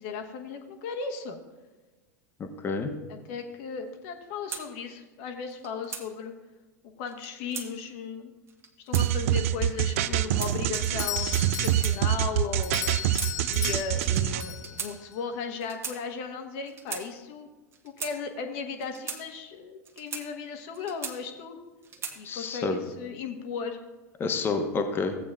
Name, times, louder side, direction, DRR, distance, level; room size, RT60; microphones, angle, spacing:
voice 1, 0.0-1.4 3.3-6.3 6.8-8.3 8.8-12.9 13.5-17.5 17.8-21.6 22.1-23.8, left 5 dB, 50° left, 5 dB, 1.2 m, -36 dB
voice 2, 2.4-2.9 22.2-22.8 24.2-25.2, left 4 dB, 25° left, 5 dB, 1.0 m, -29 dB
sound 1, 4.5-4.6 5.5-6.1 7.1-7.7 8.5-9.1 9.9-10.5 11.4-12.3 12.9-13.3 13.6-13.8 14.5-14.9 15.6-16.0 16.7-17.0 17.7-18.1 18.8-19.2 19.8-20.3 20.7-21.4 21.8-22.2, right 6 dB, 30° right, 1.2 m, -38 dB
sound 2, 8.9-14.4, right 12 dB, 55° right, 0.4 m, -25 dB
Doorbell, 10.7-15.2, left 10 dB, 70° left, 0.5 m, -37 dB
15.5 x 8.4 x 2.4 m, 1.2 s
figure-of-eight pair, 85°, 9 cm